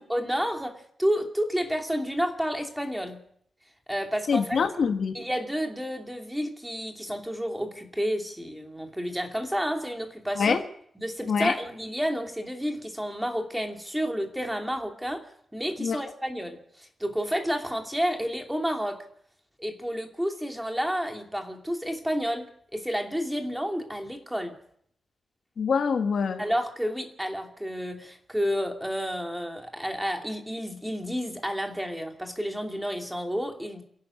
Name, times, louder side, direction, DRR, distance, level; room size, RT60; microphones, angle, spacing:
voice 1, 0.1-3.2 3.9-4.6 5.1-10.6 11.0-15.3 15.5-19.0 19.6-24.5 26.4-33.8, equal, 5° right, 2.7 m, -30 dB
voice 2, 4.3-5.1 10.4-10.6 11.3-11.6 15.8-16.0 25.6-26.4, left 6 dB, 65° left, 1.7 m, -25 dB
28.0 x 12.0 x 8.4 m
wide cardioid pair, 145°, 0 cm